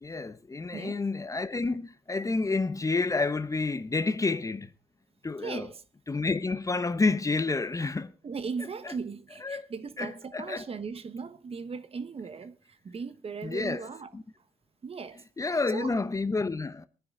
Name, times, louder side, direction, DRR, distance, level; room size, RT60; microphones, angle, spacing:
voice 1, 0.0-4.7 5.2-5.7 6.1-8.1 8.8-8.9 9.4-9.7 10.0-10.7 13.4-13.9 14.1-14.2 15.4-16.9, left 3 dB, 20° left, 0.9 m, -29 dB
voice 2, 5.4-5.8 8.2-14.1 14.8-15.2 15.7-15.9, right 5 dB, 40° right, 1.2 m, -38 dB
21.5 x 9.8 x 3.7 m
cardioid pair, 80°, 15 cm